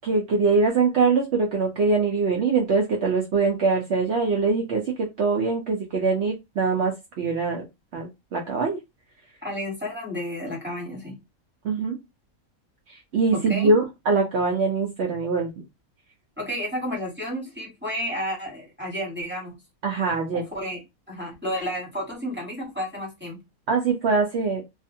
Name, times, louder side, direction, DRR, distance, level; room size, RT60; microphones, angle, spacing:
voice 1, 0.0-7.6 7.9-8.8 11.6-12.0 13.1-15.6 19.8-20.4 23.7-24.6, right 4 dB, 60° right, 1 dB, 0.8 m, -23 dB
voice 2, 9.4-11.2 13.3-13.7 16.4-19.6 20.3-23.4, equal, 10° right, -2 dB, 1.1 m, -31 dB
2.5 x 2.4 x 2.6 m, 0.21 s
omnidirectional pair, 1.5 m